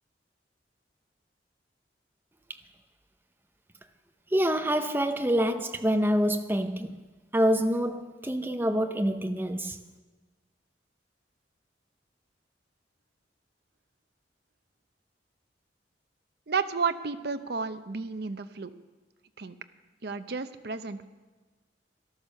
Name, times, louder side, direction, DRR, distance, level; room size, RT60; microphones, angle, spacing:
voice 1, 4.3-7.0 7.3-9.8, equal, 10° right, 0.7 m, -26 dB
voice 2, 16.5-18.7 19.4-19.5 20.0-21.1, right 5 dB, 60° right, 0.7 m, -32 dB
13.0 x 12.0 x 6.5 m
head